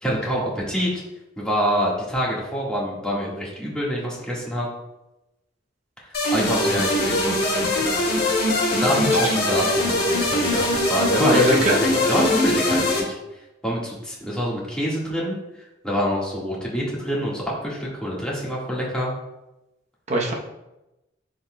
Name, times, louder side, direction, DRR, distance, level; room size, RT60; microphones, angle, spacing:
voice 1, 0.0-1.0 1.4-4.6 6.3-7.9 8.7-13.2 13.6-15.4 15.8-19.1, equal, 5° left, -5 dB, 1.5 m, -26 dB
Cerebral cortex, 6.1-13.0, left 1 dB, 55° left, 1.6 m, -21 dB
voice 2, 11.2-11.8 20.1-20.3, equal, 40° right, 0 dB, 0.8 m, -21 dB
11.0 x 3.9 x 2.2 m, 0.95 s
head